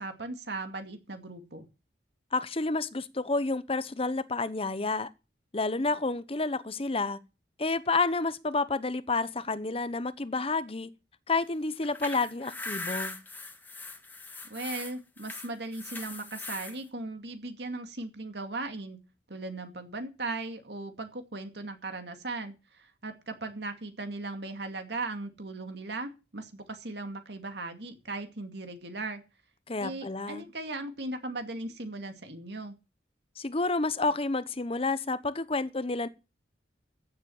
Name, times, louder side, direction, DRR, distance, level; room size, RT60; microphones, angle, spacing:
voice 1, 0.0-1.7 14.4-19.0 19.3-29.2 29.8-32.8, right 2 dB, 70° right, 2.3 m, -38 dB
voice 2, 2.3-5.1 5.5-7.2 7.6-10.9 11.3-13.2 29.7-30.4 33.4-36.1, left 3 dB, 35° left, 0.9 m, -30 dB
sound 1, 11.7-16.8, left 3 dB, 10° left, 1.5 m, -40 dB
15.0 x 7.4 x 7.1 m
head